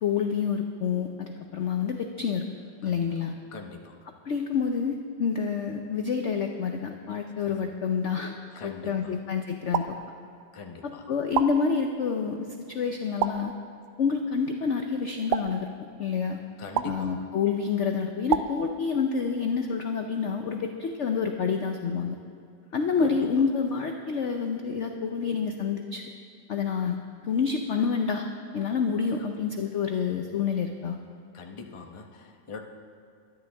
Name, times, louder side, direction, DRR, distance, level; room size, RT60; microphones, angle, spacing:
voice 1, 0.0-2.5 2.8-3.3 4.3-8.3 8.6-9.9 10.8-13.5 14.0-15.7 16.0-16.4 16.8-22.2 22.7-26.0 26.5-27.0 27.2-28.3 28.5-31.0, left 6 dB, 60° left, 4 dB, 0.7 m, -28 dB
voice 2, 3.5-4.0 7.5-7.7 8.5-9.2 10.5-11.0 16.6-17.3 23.0-23.2 31.3-32.6, left 4 dB, 25° left, 3 dB, 0.7 m, -42 dB
sound 1, 9.7-10.6 11.3-12.2 13.2-14.0 15.3-16.2 16.8-17.6 18.3-19.3, right 10 dB, 75° right, 1.1 m, -32 dB
22.5 x 11.0 x 3.5 m, 2.4 s
omnidirectional pair, 2.0 m